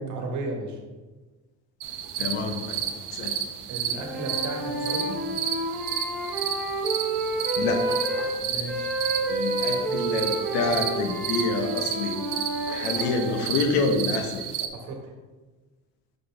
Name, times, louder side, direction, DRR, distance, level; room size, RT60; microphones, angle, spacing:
voice 1, 0.1-0.8 3.7-5.2 8.4-8.9 14.7-15.1, right 2 dB, 50° right, 1 dB, 1.4 m, -34 dB
sound 1, 1.8-14.7, right 9 dB, 75° right, 0.8 m, -32 dB
voice 2, 2.2-2.8 3.1-3.3 7.6-8.0 9.3-12.2 12.7-14.4, left 3 dB, 85° left, 4 dB, 1.2 m, -27 dB
Wind instrument woodwind instrument, 3.9-8.3 8.6-13.5, right 1 dB, 5° left, 1.6 m, -30 dB
6.5 x 5.3 x 3.4 m, 1.3 s
cardioid pair, 150°, 38 cm